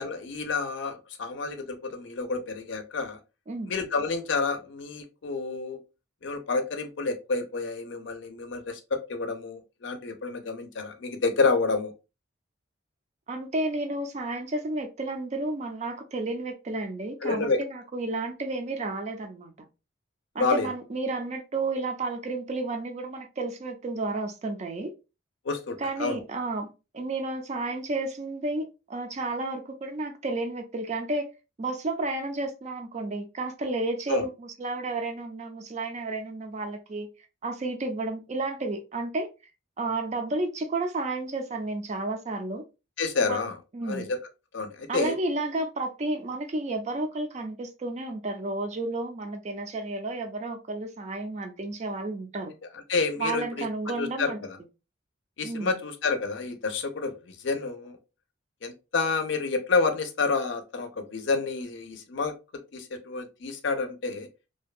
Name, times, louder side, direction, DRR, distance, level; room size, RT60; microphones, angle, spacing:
voice 1, 0.0-3.2 3.7-5.8 6.2-11.9 17.2-17.6 20.4-20.7 25.5-26.2 34.1-34.2 43.0-43.6 43.9-44.2 44.5-45.1 52.9-54.6 55.4-58.0 58.6-62.3 62.7-64.3, left 4 dB, 65° left, 0.5 m, -29 dB
voice 2, 13.3-19.5 20.3-24.9 25.8-31.3 31.6-37.1 37.4-39.3 39.8-42.6 43.3-43.5 43.7-44.1 44.9-52.5 53.2-54.4 55.4-55.7, right 2 dB, 35° right, 0.4 m, -32 dB
2.6 x 2.2 x 2.3 m
head